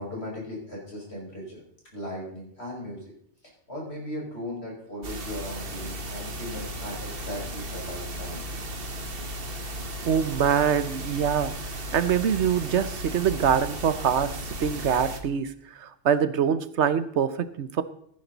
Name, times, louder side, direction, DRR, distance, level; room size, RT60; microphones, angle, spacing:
voice 1, 0.0-1.6 1.9-3.0 3.7-8.4, left 1 dB, 65° left, -3 dB, 6.1 m, -37 dB
sound 1, 5.0-15.2, equal, 55° right, 1.5 m, -35 dB
voice 2, 10.0-17.8, right 8 dB, 80° right, 14 dB, 1.1 m, -25 dB
15.0 x 10.5 x 4.0 m, 0.66 s
omnidirectional pair, 1.2 m